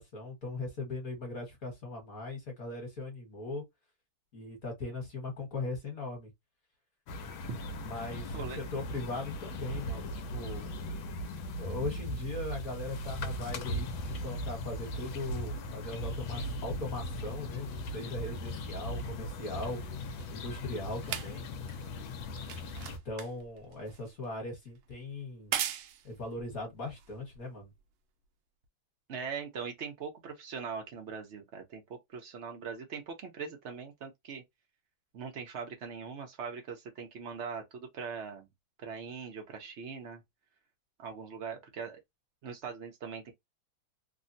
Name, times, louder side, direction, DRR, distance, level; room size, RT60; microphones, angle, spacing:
voice 1, 0.0-3.6 4.3-6.3 7.8-10.8 11.5-19.8 20.3-21.5 22.8-25.6 26.0-27.7, left 2 dB, 50° left, 1.5 m, -39 dB
sound 1, 7.1-23.0, left 1 dB, 80° left, 1.4 m, -38 dB
sound 2, 19.3-27.8 28.6-28.7, right 10 dB, 85° right, 1.4 m, -41 dB
voice 2, 29.1-34.4 35.1-38.5 38.8-40.2 41.0-42.0 42.4-43.3, right 6 dB, 70° right, 0.6 m, -41 dB
3.6 x 2.1 x 2.6 m
omnidirectional pair, 2.2 m